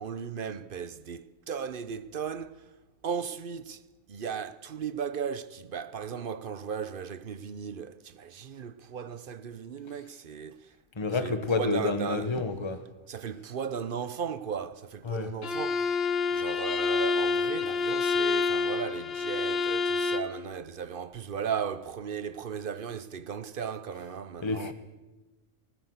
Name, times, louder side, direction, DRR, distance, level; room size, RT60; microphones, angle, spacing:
voice 1, 0.0-2.6 3.0-3.8 4.1-10.7 11.2-12.3 13.1-15.9 16.3-24.7, right 7 dB, 45° right, 0.9 m, -36 dB
voice 2, 11.0-12.8 15.0-15.3 24.4-24.7, left 3 dB, 20° left, 1.3 m, -29 dB
Bowed string instrument, 15.4-20.4, left 4 dB, 50° left, 1.4 m, -28 dB
19.0 x 19.0 x 8.1 m
omnidirectional pair, 1.4 m